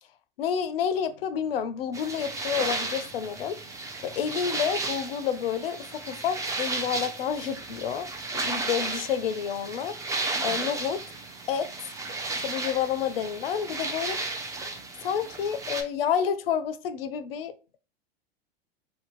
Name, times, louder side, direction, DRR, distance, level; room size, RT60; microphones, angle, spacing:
voice 1, 0.4-3.6 4.0-8.1 8.3-10.0 10.4-11.0 11.5-11.7 12.4-14.2 15.0-17.5, left 8 dB, 75° left, 0.5 m, -29 dB
sound 1, 1.9-15.8, right 3 dB, 10° right, 0.4 m, -34 dB
2.6 x 2.1 x 3.0 m
hypercardioid pair, 90°, 30 cm